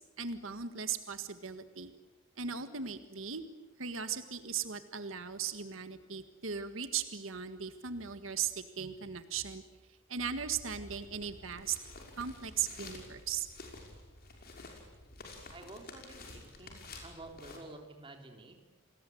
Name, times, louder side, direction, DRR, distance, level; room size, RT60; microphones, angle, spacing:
voice 1, 0.2-1.9 2.4-3.4 3.8-9.6 10.1-11.8 12.2-13.5, right 7 dB, 85° right, 10 dB, 1.7 m, -38 dB
sound 1, 10.4-17.6, left 2 dB, 50° left, 5.8 m, -51 dB
voice 2, 15.5-18.6, right 2 dB, 25° right, 4 dB, 3.4 m, -50 dB
29.0 x 20.5 x 9.4 m, 1.1 s
head